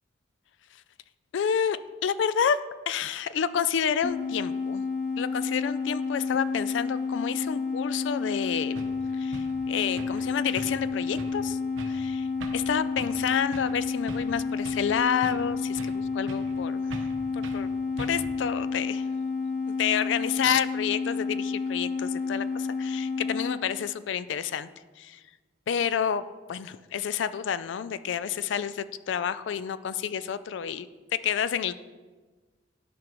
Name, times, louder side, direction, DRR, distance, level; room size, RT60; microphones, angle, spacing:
voice 1, 1.3-2.6 2.9-4.8 5.2-8.9 9.1-11.6 11.9-16.8 17.3-17.7 18.0-19.0 19.7-24.7 25.0-25.2 25.7-31.7, left 8 dB, 65° left, 14 dB, 0.3 m, -29 dB
sound 1, 4.0-23.6, left 4 dB, 50° left, 0.7 m, -30 dB
sound 2, 8.3-8.4 8.8-9.0 9.3-9.6 10.0-10.3 10.6-10.9 11.2-11.4 11.8-12.0 12.4-12.7 13.0-13.2 13.5-13.8 14.1-14.9 15.2-16.0 16.3-16.6 16.9-17.2 17.4-17.6 18.0-18.4, right 2 dB, 75° right, 0.8 m, -41 dB
12.0 x 5.1 x 3.0 m, 1.3 s
head